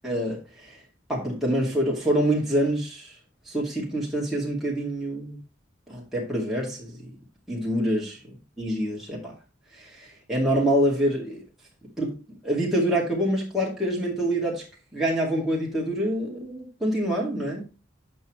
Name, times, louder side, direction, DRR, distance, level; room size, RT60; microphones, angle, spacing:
voice 1, 0.0-0.8 1.1-3.1 3.5-5.4 5.9-7.1 7.5-8.2 8.6-9.3 9.7-11.4 12.0-12.1 12.4-14.6 14.9-17.6, right 1 dB, ahead, 2.2 m, -26 dB
8.2 x 5.5 x 3.0 m
head